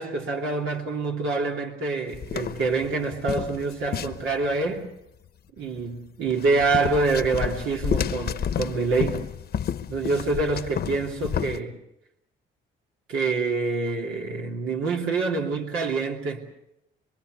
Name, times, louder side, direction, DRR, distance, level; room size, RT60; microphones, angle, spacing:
voice 1, 0.0-4.9 5.6-9.3 9.9-11.8 13.1-16.5, right 3 dB, 85° right, 2.9 m, -26 dB
sound 1, 2.1-4.6 6.3-11.6, left 8 dB, 55° left, 1.0 m, -30 dB
26.0 x 22.5 x 6.6 m
cardioid pair, 90°, 20 cm